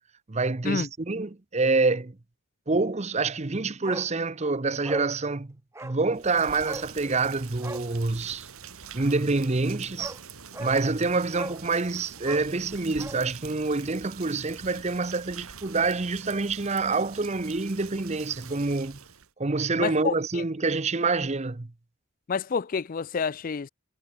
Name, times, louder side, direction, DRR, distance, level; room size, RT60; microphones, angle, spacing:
voice 1, 0.3-2.1 2.7-5.6 5.8-8.5 8.9-10.2 10.6-19.0 19.4-21.7, right 3 dB, 30° right, 0.7 m, -27 dB
Bark, 3.8-4.1 4.4-4.5 4.8-5.1 5.7-6.0 6.6-6.9 7.6-7.9 9.5-9.6 10.0-10.2 10.5-10.8 11.3-11.6 12.2-13.2 13.5-13.6, right 1 dB, 10° right, 1.7 m, -37 dB
Rain, 6.1-19.3, right 6 dB, 75° right, 2.8 m, -45 dB
voice 2, 19.8-20.4 22.3-23.7, left 5 dB, 40° left, 0.4 m, -29 dB
head